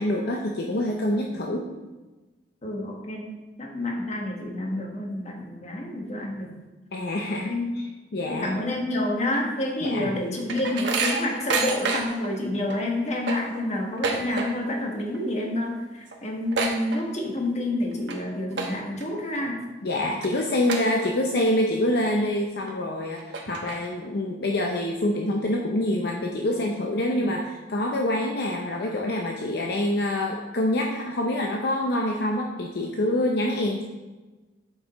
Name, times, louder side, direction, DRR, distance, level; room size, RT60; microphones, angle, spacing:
voice 1, 0.0-1.6 6.9-7.5 8.1-8.5 9.8-10.1 12.4-12.6 19.8-33.8, left 1 dB, 60° left, 1 dB, 0.7 m, -26 dB
voice 2, 2.6-6.6 7.3-7.7 8.3-19.7, left 1 dB, 40° left, 0 dB, 1.3 m, -29 dB
sound 1, 9.9-12.3 12.7-12.8 13.1-14.8 15.1-15.4 15.7-15.8 16.1-17.5 17.9-18.1 18.5-19.0 19.5-19.6 20.2-20.3 20.7-21.4 21.8-21.9 22.7-22.8 23.2-24.1, right 4 dB, 70° right, 1.1 m, -29 dB
8.0 x 5.4 x 4.1 m, 1.2 s
head